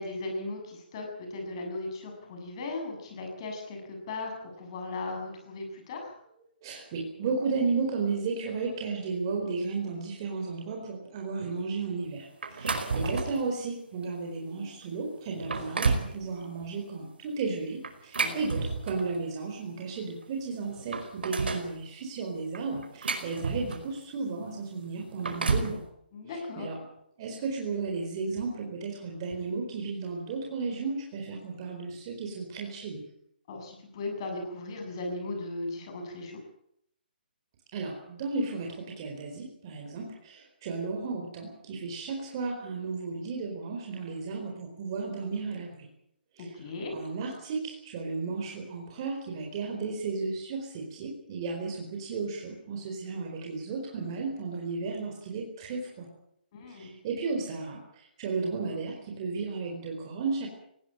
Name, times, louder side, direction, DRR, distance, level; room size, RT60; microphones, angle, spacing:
voice 1, 0.0-6.1 12.9-13.2 18.2-18.5 26.1-26.7 33.5-36.4 46.4-46.9 56.5-56.9, left 2 dB, 30° left, 3 dB, 7.5 m, -37 dB
voice 2, 6.6-25.8 26.6-26.8 27.2-33.0 37.7-45.9 46.4-46.5 46.9-56.1 56.6-60.5, right 4 dB, 25° right, 2 dB, 4.3 m, -34 dB
sound 1, 12.4-13.5 14.0-14.2 14.8-14.9 15.3-16.1 17.8-19.2 20.2-20.3 20.6-21.7 22.5-24.0 25.0-25.8, right 4 dB, 75° right, 5.0 m, -31 dB
19.5 x 17.5 x 8.9 m, 0.73 s
hypercardioid pair, 170°, 6 cm